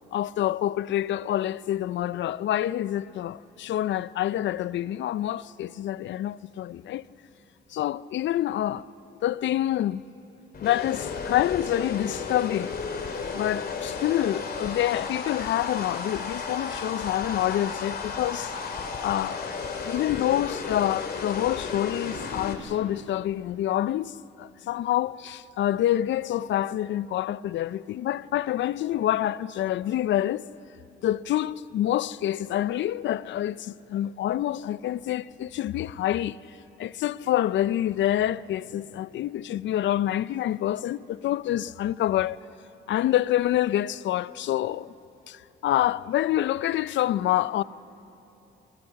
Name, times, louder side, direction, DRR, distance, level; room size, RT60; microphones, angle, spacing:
voice 1, 0.1-7.1 7.7-8.9 9.2-10.0 10.6-12.7 13.3-18.5 19.0-19.6 19.8-30.5 31.0-36.4 36.8-42.4 42.9-44.9 45.3-47.6, left 12 dB, 70° left, 0.5 m, -27 dB
sound 1, 10.5-22.5, left 5 dB, 50° left, 2.8 m, -33 dB
28.5 x 23.0 x 5.9 m
cardioid pair, 90°, 20 cm